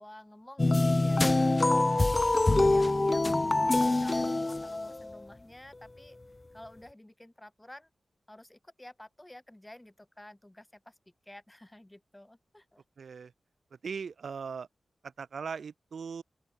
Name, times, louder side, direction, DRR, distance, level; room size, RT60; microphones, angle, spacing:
voice 1, 0.0-3.3 3.6-6.2 6.5-7.9 8.3-11.0 11.2-12.8, left 1 dB, 15° left, 6.1 m, -51 dB
sound 1, 0.6-5.2, left 2 dB, 30° left, 0.9 m, -25 dB
voice 2, 13.0-13.3 13.8-14.7 15.0-16.2, right 6 dB, 75° right, 2.1 m, -39 dB
open air
cardioid pair, 55°, 0 cm